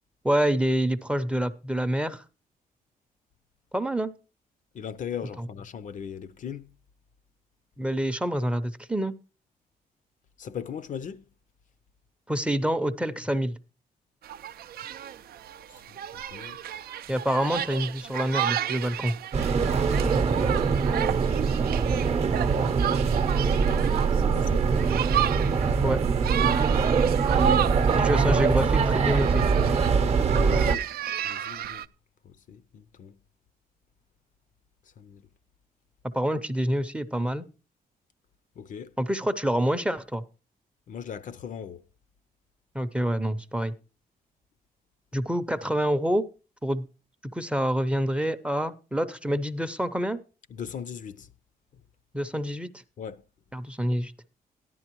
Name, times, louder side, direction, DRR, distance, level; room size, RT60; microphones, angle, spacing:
voice 1, 0.2-2.2 3.7-4.1 5.4-5.5 7.8-9.1 12.3-13.5 17.1-19.1 25.8-26.0 28.0-29.5 36.1-37.5 39.0-40.2 42.7-43.7 45.1-46.3 46.6-46.8 47.3-50.2 52.1-52.8 53.5-54.1, equal, 5° right, 0.5 m, -27 dB
voice 2, 4.8-6.7 10.4-11.2 16.3-16.6 20.5-20.6 24.1-24.9 30.0-30.8 31.2-31.8 32.5-33.1 35.0-35.2 38.6-38.9 40.9-41.8 50.5-51.3 53.0-53.2, left 8 dB, 55° left, 0.5 m, -38 dB
sound 1, 14.2-31.9, right 10 dB, 75° right, 0.4 m, -33 dB
sound 2, 19.3-30.8, right 5 dB, 40° right, 0.7 m, -23 dB
14.0 x 11.0 x 3.0 m
cardioid pair, 135°, 16 cm